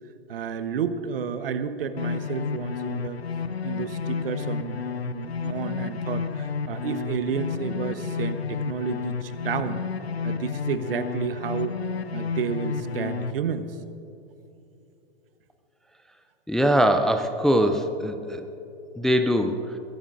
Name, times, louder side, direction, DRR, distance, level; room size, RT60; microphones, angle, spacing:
voice 1, 0.3-3.2 3.6-4.8 5.0-9.9 10.2-11.8 12.1-13.8, right 7 dB, 65° right, 10 dB, 1.1 m, -31 dB
sound 1, 2.0-13.3, left 6 dB, 90° left, 0.6 m, -31 dB
voice 2, 16.5-18.4 19.0-19.6, equal, ahead, 7 dB, 0.4 m, -22 dB
21.5 x 16.0 x 2.6 m, 2.9 s
hypercardioid pair, 110°, 30 cm